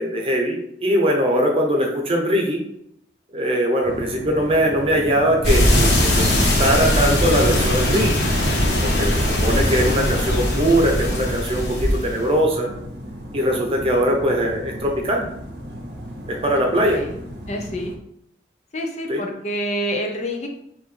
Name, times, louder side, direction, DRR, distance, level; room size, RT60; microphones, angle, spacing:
voice 1, 0.0-2.6 3.3-8.2 8.8-12.7 13.3-15.2 16.3-17.0 19.1-19.2, equal, 30° right, 1 dB, 0.8 m, -21 dB
sound 1, 3.8-18.0, equal, 75° right, 0.8 m, -35 dB
sound 2, 5.4-12.3, left 1 dB, 70° left, 1.2 m, -20 dB
voice 2, 16.8-17.2 17.5-17.9 18.7-20.5, equal, 40° left, 2 dB, 0.6 m, -27 dB
5.7 x 2.6 x 3.3 m, 0.75 s
head